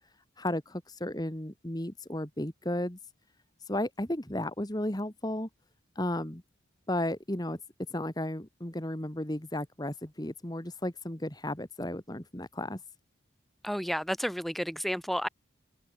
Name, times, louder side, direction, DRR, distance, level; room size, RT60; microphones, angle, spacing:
voice 1, 0.0-3.0 3.6-5.5 5.9-6.4 6.9-7.6 7.9-12.8, left 1 dB, 20° left, 1.6 m, -34 dB
voice 2, 13.6-15.3, equal, ahead, 4.5 m, -31 dB
head